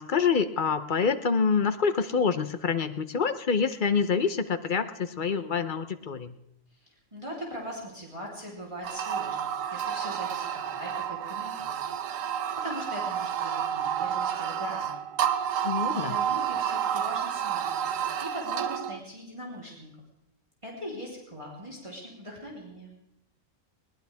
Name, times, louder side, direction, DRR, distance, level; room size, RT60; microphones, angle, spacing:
voice 1, 0.0-6.3 15.6-16.1, left 5 dB, 45° left, 11 dB, 0.8 m, -26 dB
voice 2, 6.8-11.8 12.5-15.1 15.9-19.9 20.6-22.9, equal, 20° right, -4 dB, 3.4 m, -41 dB
sound 1, 8.8-19.0, right 9 dB, 75° right, 1.2 m, -30 dB
21.0 x 19.0 x 3.5 m, 0.83 s
omnidirectional pair, 1.4 m